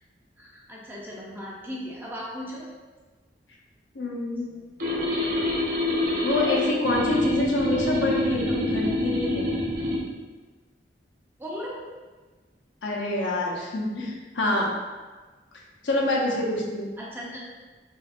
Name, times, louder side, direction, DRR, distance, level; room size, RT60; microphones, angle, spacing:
voice 1, 0.4-2.7 4.5-4.6 11.4-11.8 17.0-17.4, equal, 10° right, -5 dB, 0.7 m, -37 dB
voice 2, 3.9-4.5 6.2-9.5 12.8-14.7 15.8-16.9, left 2 dB, 85° left, -2 dB, 0.8 m, -26 dB
sound 1, 4.8-10.0, left 1 dB, 50° right, 0.8 m, -26 dB
5.7 x 2.5 x 2.6 m, 1.3 s
head